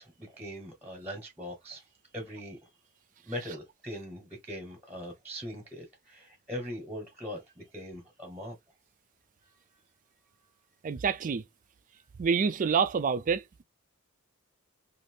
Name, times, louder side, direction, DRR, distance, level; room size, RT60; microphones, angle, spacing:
voice 1, 0.0-1.8 2.1-2.6 3.3-8.5, equal, 10° right, 1.0 m, -41 dB
voice 2, 10.8-11.4 12.2-13.6, right 6 dB, 35° right, 0.3 m, -27 dB
2.7 x 2.5 x 3.2 m
head